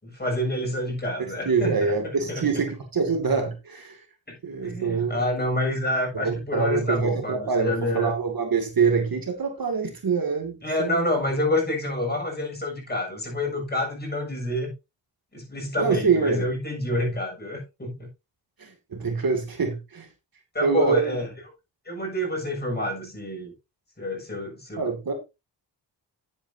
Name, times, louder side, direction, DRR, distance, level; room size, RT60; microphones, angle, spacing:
voice 1, 0.0-1.8 2.3-2.4 4.3-4.4 4.6-8.1 10.6-14.7 15.3-18.1 20.5-21.3 21.9-23.5 24.0-24.8, left 1 dB, 20° left, 7.1 m, -28 dB
voice 2, 1.4-4.0 4.4-5.2 6.1-11.1 15.8-16.4 18.6-20.1 20.6-21.2 24.8-25.1, right 5 dB, 50° right, 2.5 m, -25 dB
10.5 x 8.9 x 2.8 m
cardioid pair, 65°, 43 cm